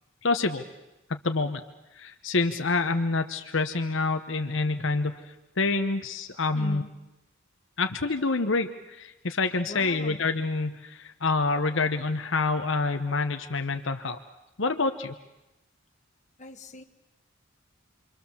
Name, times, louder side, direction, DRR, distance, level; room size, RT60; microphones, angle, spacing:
voice 1, 0.2-0.6 1.1-1.6 2.0-6.8 7.8-14.2 14.6-15.1, left 3 dB, 65° left, 6 dB, 1.1 m, -27 dB
voice 2, 6.5-7.0 9.7-10.2 16.4-16.8, left 1 dB, 35° left, 5 dB, 1.6 m, -40 dB
28.5 x 24.0 x 7.3 m, 0.97 s
head